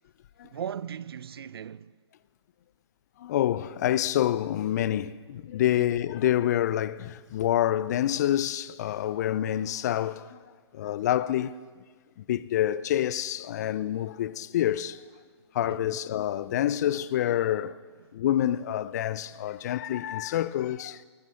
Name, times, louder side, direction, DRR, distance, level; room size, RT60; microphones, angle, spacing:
voice 1, 0.4-2.0 5.7-5.9 15.6-16.0, right 8 dB, 55° right, 0.5 m, -38 dB
voice 2, 3.2-10.4 10.7-11.5 12.3-15.0 15.5-17.8 18.1-21.0, left 12 dB, 35° left, 0.5 m, -27 dB
20.5 x 12.5 x 5.7 m
figure-of-eight pair, 140°, 15 cm